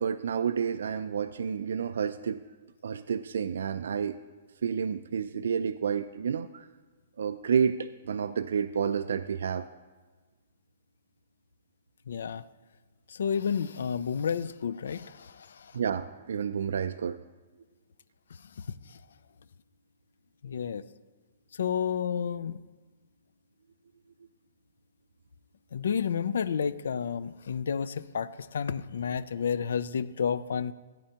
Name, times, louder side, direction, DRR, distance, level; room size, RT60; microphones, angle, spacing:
voice 1, 0.0-2.4 2.8-4.2 4.6-6.7 7.2-9.7 15.7-17.2, right 7 dB, 85° right, 13 dB, 0.3 m, -30 dB
voice 2, 12.1-12.4 13.1-15.8 18.6-19.0 20.4-20.8 21.5-22.6 25.7-30.7, left 7 dB, 85° left, 15 dB, 0.3 m, -31 dB
14.5 x 9.0 x 2.9 m, 1.4 s
hypercardioid pair, 165°, 0 cm